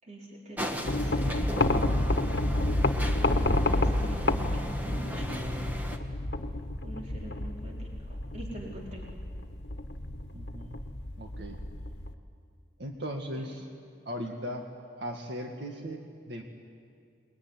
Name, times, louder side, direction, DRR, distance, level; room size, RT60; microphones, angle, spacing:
voice 1, 0.0-2.0 3.7-5.6 6.8-9.0, right 1 dB, 40° right, -3 dB, 4.5 m, -45 dB
sound 1, 0.6-6.0, equal, 10° right, 1.6 m, -37 dB
sound 2, 0.8-12.1, left 1 dB, 60° left, 1.4 m, -30 dB
voice 2, 10.3-10.8 11.2-11.6 12.8-13.7 14.1-14.7 15.0-16.4, equal, 70° right, 2 dB, 1.9 m, -38 dB
28.0 x 22.0 x 9.6 m, 2.3 s
head